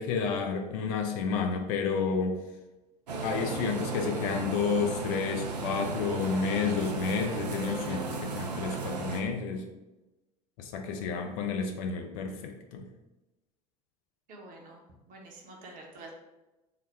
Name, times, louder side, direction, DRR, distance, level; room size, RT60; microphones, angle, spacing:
voice 1, 0.0-2.4 3.2-9.6 10.6-12.9, left 5 dB, 55° left, 4 dB, 0.5 m, -30 dB
sound 1, 3.1-9.2, right 3 dB, 75° right, 0.5 m, -35 dB
voice 2, 14.3-16.1, right 2 dB, 40° right, 0 dB, 0.9 m, -48 dB
3.8 x 2.1 x 3.3 m, 1.1 s
figure-of-eight pair, 70°, 21 cm